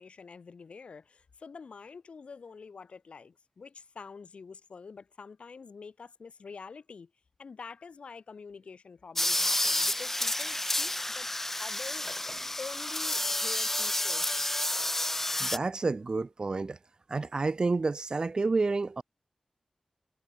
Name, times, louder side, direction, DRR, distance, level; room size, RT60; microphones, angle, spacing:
voice 1, 0.0-7.1 7.4-11.3 11.6-12.1 12.6-14.3, left 5 dB, 70° left, 7.4 m, -47 dB
sound 1, 9.2-15.6, left 1 dB, 15° left, 0.7 m, -30 dB
voice 2, 15.4-16.8 17.1-19.0, right 3 dB, 40° right, 1.3 m, -29 dB
wide cardioid pair, 125°, 2 cm